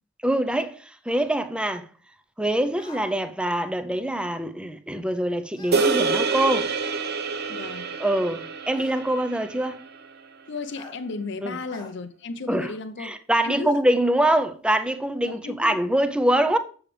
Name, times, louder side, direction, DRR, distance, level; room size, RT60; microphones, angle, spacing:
voice 1, 0.2-1.9 2.4-6.7 8.0-9.8 11.4-11.6 12.5-12.7 13.0-16.6, right 1 dB, 5° right, 0.5 m, -24 dB
sound 1, 2.8-3.1 5.5-5.8 7.1-7.2 8.8-9.0 10.7-11.0 11.7-11.9, left 3 dB, 20° left, 1.2 m, -45 dB
sound 2, 5.7-10.2, right 4 dB, 55° right, 0.9 m, -27 dB
voice 2, 7.5-8.0 10.5-13.1 13.4-13.7 15.2-15.8, left 3 dB, 65° left, 0.6 m, -34 dB
7.1 x 7.0 x 3.3 m
head